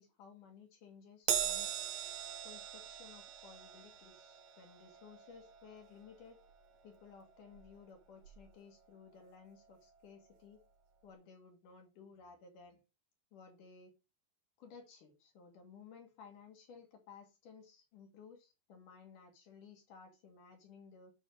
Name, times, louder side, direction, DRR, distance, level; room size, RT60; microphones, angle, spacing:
voice 1, 0.0-1.8 2.4-6.4 6.8-10.6 11.0-12.8 13.3-13.9 14.6-21.1, left 5 dB, 60° left, 3.0 m, -57 dB
Crash cymbal, 1.3-7.9 8.2-8.5 9.5-9.6, right 9 dB, 80° right, 3.4 m, -41 dB
9.3 x 3.2 x 6.5 m
omnidirectional pair, 4.8 m